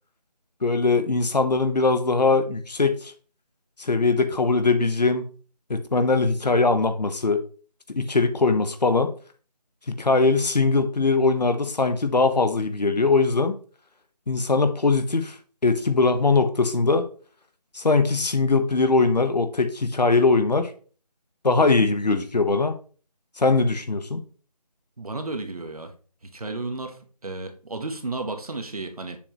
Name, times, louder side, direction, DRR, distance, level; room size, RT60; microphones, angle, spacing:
voice 1, 0.6-3.1 3.8-5.2 5.7-7.4 7.9-9.1 9.9-13.6 14.3-15.4 15.6-17.1 17.7-20.7 21.4-22.7 23.4-24.2, left 3 dB, 85° left, 8 dB, 1.1 m, -21 dB
voice 2, 25.0-25.9 26.2-29.2, right 2 dB, 65° right, 6 dB, 1.3 m, -33 dB
7.0 x 5.1 x 3.0 m, 0.40 s
figure-of-eight pair, 180°, 21 cm